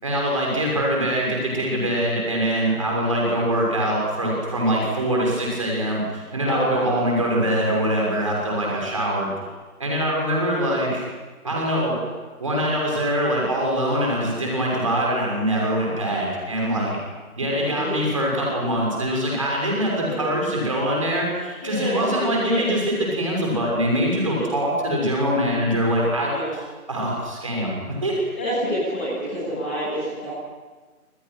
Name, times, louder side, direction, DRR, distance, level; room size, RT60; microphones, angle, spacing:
voice 1, 0.0-9.3 9.8-11.0 11.4-12.0 12.4-17.0 17.4-26.3 26.9-28.2, equal, 20° right, -2 dB, 6.3 m, -23 dB
voice 2, 6.4-6.9 17.5-17.9 20.0-20.2 21.6-22.6 24.2-24.5 26.3-26.5 28.4-30.3, equal, 10° left, -11 dB, 3.7 m, -28 dB
29.0 x 27.0 x 6.3 m, 1.3 s
figure-of-eight pair, 170°, 44 cm